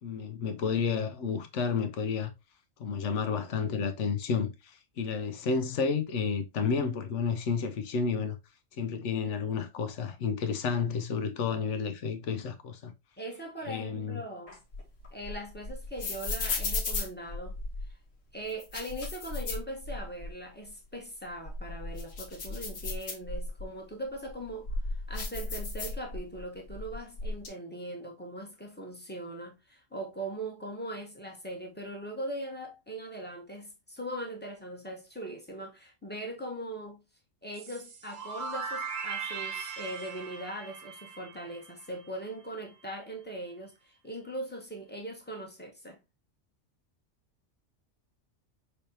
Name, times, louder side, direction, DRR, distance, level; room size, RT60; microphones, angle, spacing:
voice 1, 0.0-2.3 2.8-8.4 8.8-12.9 13.7-14.2, left 6 dB, 70° left, 1.1 m, -31 dB
voice 2, 13.2-14.6 15.1-17.6 18.3-37.0 37.4-46.0, right 1 dB, 10° left, 1.2 m, -40 dB
sound 1, 14.5-17.9 18.5-20.3 20.7-20.8 21.3-23.7 24.2-26.4 26.7-27.5, left 3 dB, 85° left, 1.6 m, -35 dB
sound 2, 37.5-42.3, right 5 dB, 80° right, 1.4 m, -39 dB
5.6 x 3.4 x 2.8 m
omnidirectional pair, 1.3 m